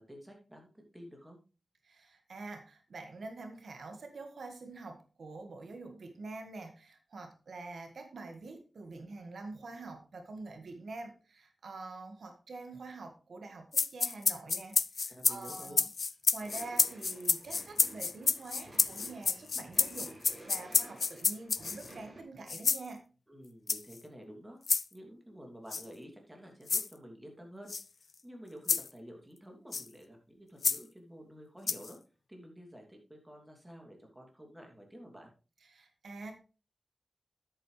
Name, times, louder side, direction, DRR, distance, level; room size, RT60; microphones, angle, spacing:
voice 1, 0.0-1.4 15.1-15.8 23.3-24.6 24.9-27.7 28.2-32.0 32.3-35.3, equal, 15° right, 2 dB, 2.8 m, -50 dB
voice 2, 1.8-15.8 16.3-23.0 35.6-36.3, right 3 dB, 80° right, 5 dB, 1.8 m, -46 dB
sound 1, 13.7-21.9 22.5-22.9 23.7-24.0 24.7-24.8 25.7-25.8 26.7-26.9 27.7-27.8 28.7-28.9 29.7-29.9 30.6-30.8 31.7-31.9, left 5 dB, 65° left, 0.4 m, -29 dB
sound 2, 16.4-22.2, right 1 dB, 50° right, 5.4 m, -53 dB
10.5 x 8.7 x 3.3 m, 0.34 s
wide cardioid pair, 115°, 0 cm